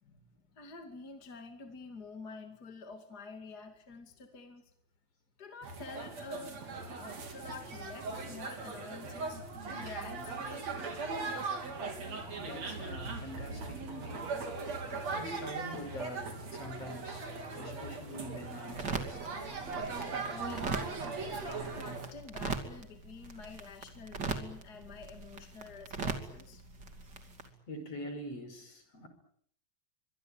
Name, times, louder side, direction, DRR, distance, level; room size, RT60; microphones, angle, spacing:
voice 1, 0.0-4.7 5.4-10.7 20.3-26.6, left 4 dB, 35° left, 6 dB, 2.7 m, -49 dB
sound 1, 5.6-22.1, right 3 dB, 65° right, 5.0 m, -39 dB
voice 2, 12.4-14.3 15.1-19.4 27.7-29.1, equal, 55° left, 8 dB, 6.3 m, -45 dB
sound 2, 18.7-27.5, right 4 dB, 35° right, 3.2 m, -41 dB
25.0 x 22.5 x 8.9 m, 0.66 s
omnidirectional pair, 3.3 m